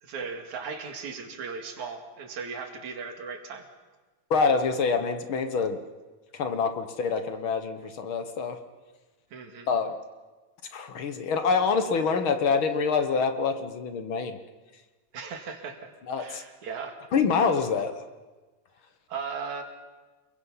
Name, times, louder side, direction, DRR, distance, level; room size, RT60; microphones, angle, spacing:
voice 1, 0.0-3.7 9.3-9.7 15.1-15.9 16.2-17.0 19.1-19.6, right 5 dB, 70° right, 4 dB, 3.5 m, -37 dB
voice 2, 4.3-5.8 6.3-8.6 9.7-9.9 10.7-14.4 16.1-16.4 17.1-18.0, left 5 dB, 55° left, 8 dB, 1.7 m, -26 dB
29.0 x 22.0 x 5.6 m, 1.3 s
omnidirectional pair, 3.5 m